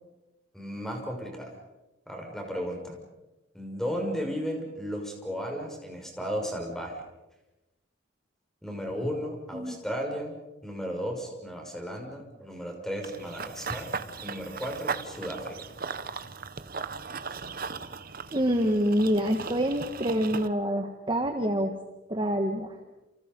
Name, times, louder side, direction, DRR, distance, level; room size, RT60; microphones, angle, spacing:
voice 1, 0.5-1.5 2.1-3.0 3.5-7.0 8.6-10.3 10.6-13.9 14.2-15.6, equal, ahead, 2 dB, 6.1 m, -34 dB
Run / Bird vocalization bird call bird song, 13.0-20.5, right 5 dB, 50° right, 1.1 m, -37 dB
voice 2, 18.3-21.7 22.1-22.8, equal, 25° right, 4 dB, 1.6 m, -26 dB
29.5 x 28.5 x 5.4 m, 1.0 s
head